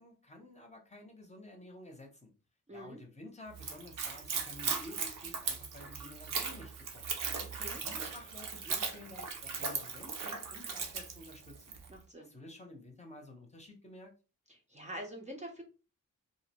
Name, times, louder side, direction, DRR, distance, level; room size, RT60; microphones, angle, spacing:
voice 1, 0.0-2.3 2.7-7.1 7.7-11.8 12.2-14.1, left 1 dB, 20° left, 2 dB, 0.7 m, -52 dB
voice 2, 2.7-3.0 7.4-7.8 11.9-12.3 14.5-15.6, equal, 20° right, 0 dB, 0.5 m, -45 dB
Splash splatter / Trickle dribble, 3.5-11.9, right 5 dB, 75° right, 0.6 m, -38 dB
2.5 x 2.1 x 2.8 m, 0.34 s
cardioid pair, 75°, 33 cm